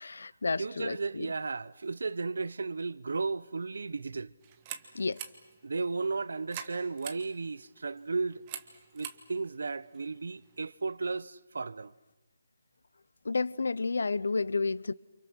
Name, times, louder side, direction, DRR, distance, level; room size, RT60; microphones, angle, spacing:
voice 1, 0.0-1.3 4.9-5.2 13.2-14.9, left 4 dB, 80° left, 0.8 m, -31 dB
voice 2, 0.6-4.3 5.6-8.4 8.9-11.9, right 4 dB, 65° right, 0.9 m, -34 dB
sound 1, 4.4-10.7, right 9 dB, 15° right, 1.1 m, -47 dB
29.0 x 28.0 x 6.3 m
hypercardioid pair, 180°, 0 cm